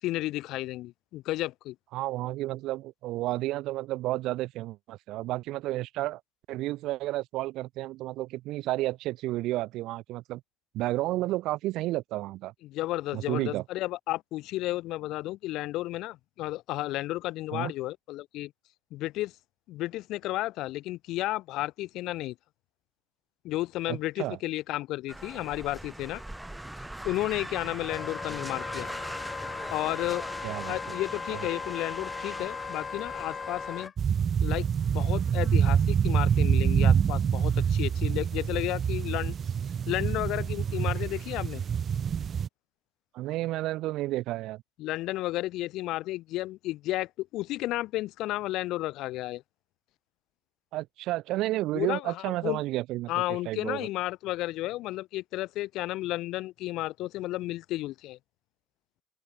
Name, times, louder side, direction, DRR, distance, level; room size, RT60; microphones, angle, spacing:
voice 1, 0.0-1.8 12.6-18.5 18.9-19.3 19.7-22.3 23.4-26.2 27.0-28.9 29.7-30.2 30.7-33.9 34.4-39.3 39.9-41.6 44.8-49.4 51.7-52.2 52.4-52.6 53.1-58.2, left 17 dB, 70° left, 7.4 m, -32 dB
voice 2, 1.9-6.2 6.5-10.4 10.7-12.5 13.1-13.6 17.5-17.7 23.9-24.4 30.4-31.0 31.3-31.4 43.1-44.6 50.7-53.1 53.4-53.9, right 17 dB, 70° right, 6.8 m, -31 dB
sound 1, 25.1-33.9, right 1 dB, 5° right, 4.7 m, -41 dB
Wind instrument woodwind instrument, 27.9-33.9, left 6 dB, 30° left, 5.1 m, -38 dB
sound 2, 34.0-42.5, right 7 dB, 35° right, 2.9 m, -26 dB
open air
cardioid pair, 135°, 0 cm